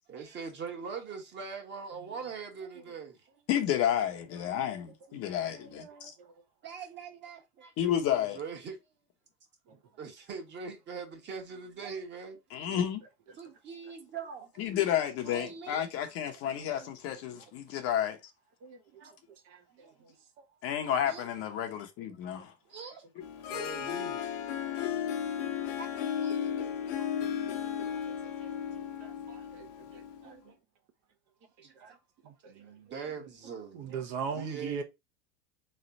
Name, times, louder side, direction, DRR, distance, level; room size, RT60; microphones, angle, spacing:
voice 1, 0.1-3.4 5.1-6.1 6.6-8.8 10.0-12.4 12.7-12.8 13.3-14.5 15.2-15.9 16.4-16.6 17.3-17.4 18.9-19.1 19.7-20.0 21.0-21.3 22.7-23.0 23.4-24.2 25.2-27.2 29.0-29.1 30.2-30.4 31.6-32.0 32.5-34.0 34.3-34.8, right 5 dB, 30° right, 1.4 m, -43 dB
voice 2, 3.5-6.1 7.8-8.4 12.5-13.0 14.6-18.2 20.6-22.5 23.2-23.3, left 10 dB, 40° left, 0.9 m, -31 dB
voice 3, 19.5-20.1 24.6-24.7 25.5-25.6 26.6-26.8 27.8-28.1 28.4-28.5 29.0-29.7 31.8-31.9 32.2-32.5 33.7-34.8, right 6 dB, 45° right, 1.0 m, -40 dB
Harp, 23.2-30.3, left 9 dB, 70° left, 1.0 m, -35 dB
3.7 x 3.3 x 4.0 m
supercardioid pair, 135°, 37 cm